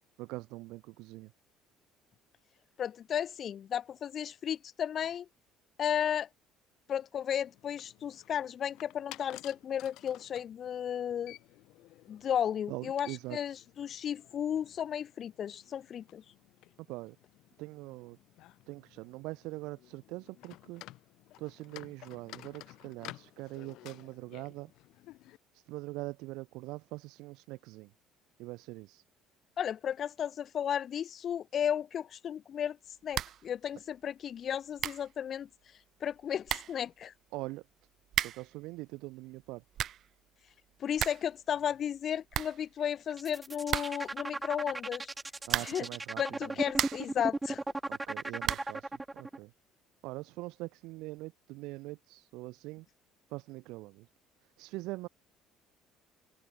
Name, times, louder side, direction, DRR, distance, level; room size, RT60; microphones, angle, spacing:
voice 1, 0.2-1.3 12.7-13.4 16.9-17.2 17.6-18.2 18.7-20.8 21.4-24.7 25.5-27.9 28.4-29.0 37.3-37.6 38.2-39.6 45.5-46.6 47.9-49.5 50.0-52.9 53.3-54.1 54.6-55.1, right 21 dB, 80° right, 3.8 m, -43 dB
voice 2, 2.8-5.3 5.8-6.3 6.9-11.4 12.1-16.2 29.6-32.8 33.0-35.5 36.0-37.1 40.8-45.1 45.6-45.9 46.2-47.6, left 9 dB, 35° left, 2.0 m, -34 dB
sound 1, 7.4-25.4, left 17 dB, 65° left, 4.7 m, -54 dB
sound 2, 33.1-33.5 33.8-33.9 34.5-34.6 34.8-35.1 36.1-36.2 36.4-36.8 38.1-38.5 39.5-40.1 40.5-40.6 40.8-41.3 41.6-41.7 42.0-42.1 42.3-43.1 43.7-44.2 45.4-45.9 46.4-47.2 48.4-48.8, right 11 dB, 45° right, 0.9 m, -34 dB
sound 3, 43.1-49.4, right 2 dB, 10° right, 1.8 m, -36 dB
open air
cardioid pair, 160°, 0 cm